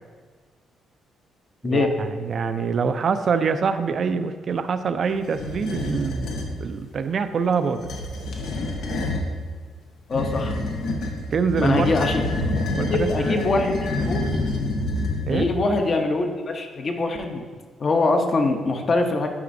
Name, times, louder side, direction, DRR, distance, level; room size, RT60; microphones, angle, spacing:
voice 1, 1.6-7.9 11.3-11.9 12.7-13.5 15.2-15.5, right 5 dB, 50° right, 10 dB, 0.4 m, -25 dB
sound 1, 5.3-6.6 7.7-9.3 10.1-15.6, left 2 dB, 75° left, 0.9 m, -27 dB
voice 2, 10.1-10.6 11.6-12.2 12.9-13.7 14.1-14.2 15.3-17.4 17.8-19.3, left 3 dB, 45° left, 4 dB, 0.7 m, -23 dB
9.6 x 4.9 x 2.6 m, 1.5 s
cardioid pair, 90°, 0 cm